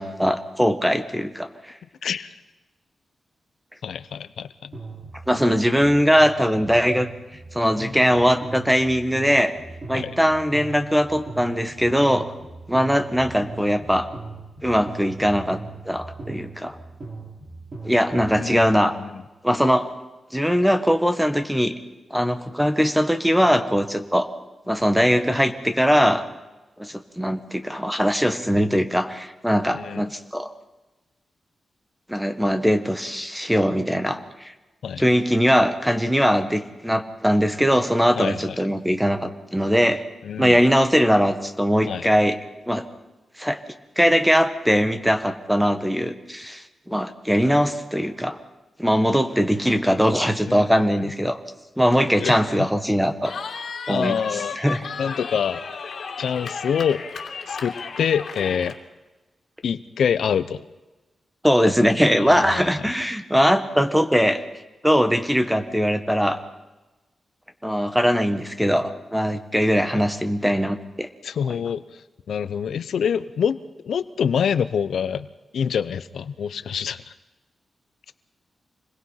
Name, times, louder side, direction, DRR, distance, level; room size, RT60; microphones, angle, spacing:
voice 1, 0.0-1.7 5.3-7.1 7.5-9.5 9.9-12.3 12.7-14.1 14.6-15.6 15.8-16.8 17.8-18.9 19.4-19.9 20.3-21.7 22.1-24.3 24.7-26.2 26.8-30.5 32.1-34.5 35.0-40.0 40.4-42.4 42.7-42.9 43.4-43.6 44.0-48.4 48.8-51.4 51.8-53.3 53.9-54.2 54.6-54.8 61.4-64.4 64.8-66.4 67.6-71.1, equal, 5° right, 8 dB, 1.6 m, -21 dB
voice 2, 2.0-2.4 3.8-4.7 9.9-10.2 18.3-19.2 29.7-30.0 34.8-35.0 38.2-38.6 40.2-40.6 41.9-42.1 50.5-51.1 52.2-52.7 53.9-54.6 55.0-55.7 56.2-57.0 57.5-58.8 59.6-60.6 62.2-62.9 69.8-70.0 71.2-73.6 73.8-75.3 75.5-77.0, left 7 dB, 90° left, 14 dB, 0.8 m, -26 dB
sound 1, 4.7-18.7, right 3 dB, 40° right, 6.2 m, -39 dB
Cheering, 53.3-58.8, left 5 dB, 70° left, 2.8 m, -34 dB
27.0 x 20.5 x 5.8 m, 1.1 s
wide cardioid pair, 125°, 0 cm